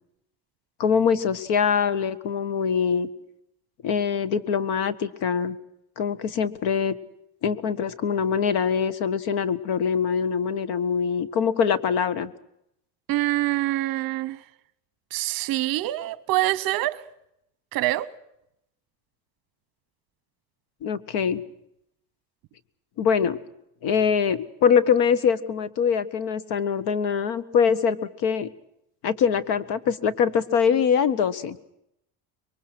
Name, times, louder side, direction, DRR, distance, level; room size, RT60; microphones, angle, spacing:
voice 1, 0.8-3.1 3.8-5.6 6.0-6.9 7.4-12.3 20.8-21.4 23.0-23.4 23.8-28.0 28.2-28.5 29.0-31.6, left 7 dB, 65° left, 1.6 m, -23 dB
voice 2, 13.1-14.4 15.1-17.0 17.7-18.1, right 16 dB, 50° right, 1.0 m, -25 dB
26.0 x 23.0 x 6.3 m
cardioid pair, 170°, 43 cm